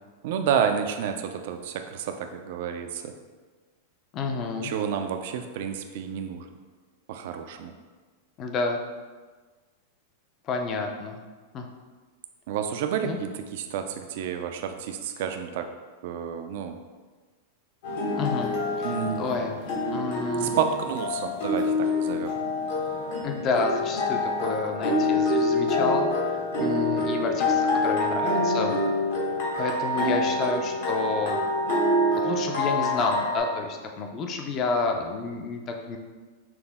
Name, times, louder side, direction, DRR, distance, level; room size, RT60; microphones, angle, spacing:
voice 1, 0.2-3.1 4.6-6.5 7.1-7.7 12.5-15.7 16.0-16.8 18.8-19.3 20.4-22.4, right 8 dB, 65° right, 6 dB, 0.4 m, -30 dB
voice 2, 4.1-4.7 8.4-8.8 10.4-11.2 11.5-11.7 13.0-13.2 18.2-19.6 19.9-20.5 23.2-26.1 26.6-28.8 29.6-31.4 32.1-36.0, left 3 dB, 30° left, 3 dB, 0.5 m, -29 dB
sound 1, 17.8-33.4, left 2 dB, 70° left, 1.3 m, -26 dB
5.9 x 2.1 x 3.5 m, 1.4 s
supercardioid pair, 135°, 0 cm